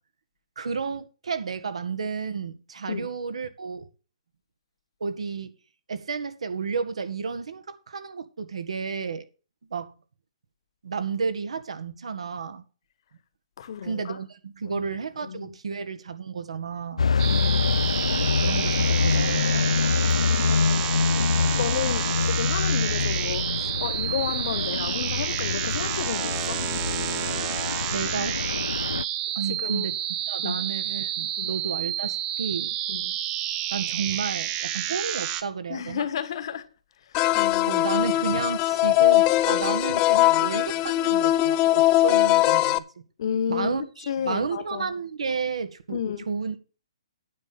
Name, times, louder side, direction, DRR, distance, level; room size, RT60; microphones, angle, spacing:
voice 1, 0.5-3.9 5.0-5.5 5.9-9.2 9.7-9.9 10.8-12.6 13.8-17.1 18.1-19.6 27.9-28.4 29.3-30.0 30.3-32.7 33.7-36.1 37.7-42.8 43.5-46.0 46.3-46.5, right 5 dB, 80° right, 1.8 m, -32 dB
voice 2, 13.6-14.2 14.7-14.8 15.2-15.5 17.2-18.1 20.3-20.9 21.6-26.7 29.5-29.9 30.4-30.6 31.4-31.5 32.9-33.2 35.7-36.7 37.3-37.8 43.2-43.8 44.1-44.9 45.9-46.2, left 8 dB, 55° left, 1.4 m, -32 dB
sound 1, 17.0-29.0, left 5 dB, 90° left, 0.4 m, -25 dB
sound 2, 17.2-35.4, right 11 dB, 25° right, 1.0 m, -30 dB
sound 3, 37.1-42.8, left 16 dB, 25° left, 0.6 m, -21 dB
9.7 x 7.1 x 5.9 m
hypercardioid pair, 150°, 3 cm